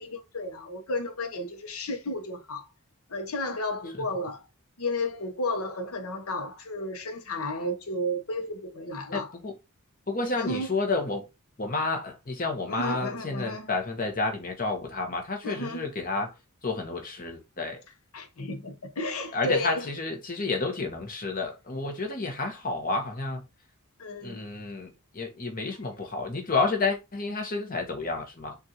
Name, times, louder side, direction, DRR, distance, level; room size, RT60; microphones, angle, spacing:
voice 1, 0.0-2.6 3.1-4.4 4.8-9.3 10.4-10.7 12.7-13.7 15.4-15.8 18.1-19.8 24.0-24.4 25.7-25.8, left 1 dB, 75° left, 0.9 m, -33 dB
voice 2, 9.1-9.6 10.1-11.3 11.6-16.3 16.6-17.8 19.3-23.5 24.2-28.6, left 3 dB, 40° left, 1.0 m, -30 dB
6.2 x 2.5 x 2.8 m
head